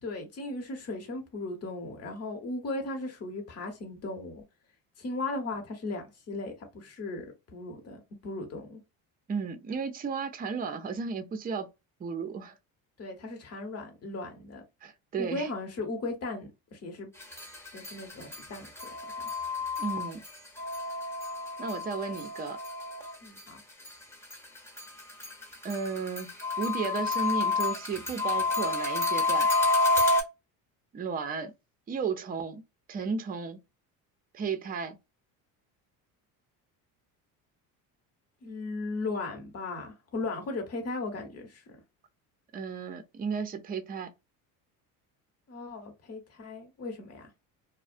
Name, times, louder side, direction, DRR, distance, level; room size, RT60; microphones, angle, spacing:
voice 1, 0.0-4.4 5.0-8.8 13.0-14.6 15.2-17.1 17.7-18.7 23.2-23.6 38.4-41.6 45.5-47.3, left 2 dB, 35° left, 1.1 m, -37 dB
voice 2, 9.3-11.7 12.0-12.5 14.8-15.5 19.8-20.2 21.6-22.6 25.6-26.3 26.6-29.5 30.9-31.5 31.9-32.6 32.9-33.6 34.3-35.0 42.5-44.1, right 5 dB, 20° right, 0.5 m, -34 dB
sound 1, 17.2-23.4 23.8-30.2, left 3 dB, 5° left, 0.9 m, -30 dB
2.3 x 2.1 x 2.5 m
supercardioid pair, 85°, 43 cm